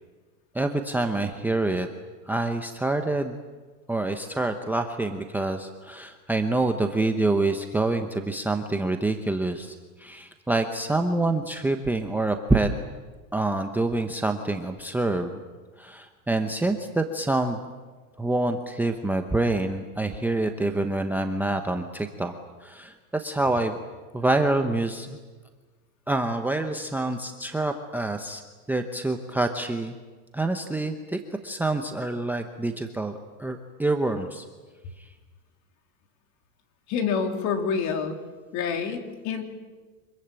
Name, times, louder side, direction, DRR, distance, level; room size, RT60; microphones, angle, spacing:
voice 1, 0.5-1.9 2.3-3.4 3.9-12.7 13.3-15.3 15.8-17.6 18.2-22.3 22.6-23.8 24.1-25.2 26.1-28.4 28.7-30.0 30.3-34.5 35.0-35.1, right 2 dB, 5° right, 5 dB, 0.9 m, -26 dB
voice 2, 36.9-38.2 38.5-39.4, left 6 dB, 40° left, 5 dB, 3.6 m, -27 dB
25.5 x 22.0 x 9.0 m, 1.3 s
supercardioid pair, 150°, 42 cm